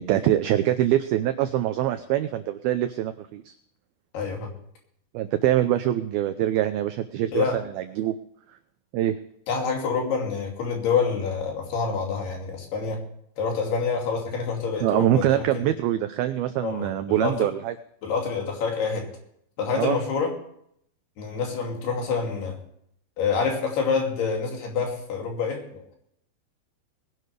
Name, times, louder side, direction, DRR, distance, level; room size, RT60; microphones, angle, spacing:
voice 1, 0.0-3.5 5.1-7.5 7.8-8.2 8.9-9.2 14.8-17.7 19.7-20.0, right 13 dB, 90° right, 9 dB, 2.1 m, -24 dB
voice 2, 4.1-4.5 7.3-7.6 9.5-13.0 13.4-15.6 16.6-17.5 18.0-19.1 19.6-20.3 21.2-22.6 23.2-26.0, left 5 dB, 60° left, 1 dB, 4.5 m, -27 dB
21.0 x 11.0 x 3.3 m, 0.69 s
omnidirectional pair, 5.3 m